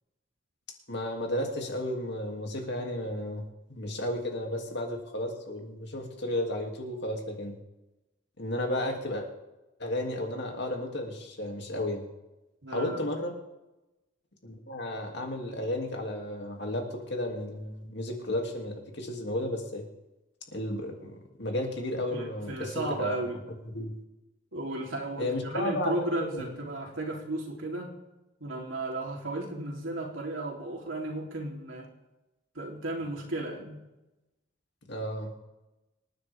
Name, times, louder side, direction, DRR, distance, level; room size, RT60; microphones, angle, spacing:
voice 1, 0.9-3.4 3.7-7.5 8.4-9.3 9.8-12.0 12.7-13.3 14.4-19.8 20.5-23.2 23.7-23.9 25.2-26.0 26.3-26.5 34.9-35.3, left 1 dB, 60° left, 1 dB, 2.7 m, -33 dB
voice 2, 12.6-13.0 22.1-23.4 24.5-27.9 28.4-31.9 32.5-33.8, right 2 dB, 85° right, -1 dB, 3.3 m, -34 dB
27.0 x 9.8 x 3.6 m, 1.0 s
head